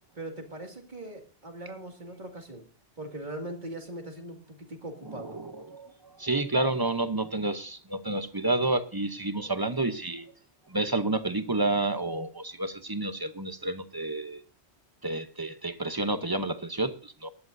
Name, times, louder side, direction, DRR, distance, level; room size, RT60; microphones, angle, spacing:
voice 1, 0.1-2.6 3.0-5.4, right 1 dB, 40° right, 3 dB, 2.4 m, -40 dB
voice 2, 5.1-10.3 10.7-14.4 15.0-17.3, right 2 dB, 25° right, 11 dB, 0.7 m, -30 dB
22.5 x 11.5 x 2.6 m, 0.35 s
omnidirectional pair, 1.2 m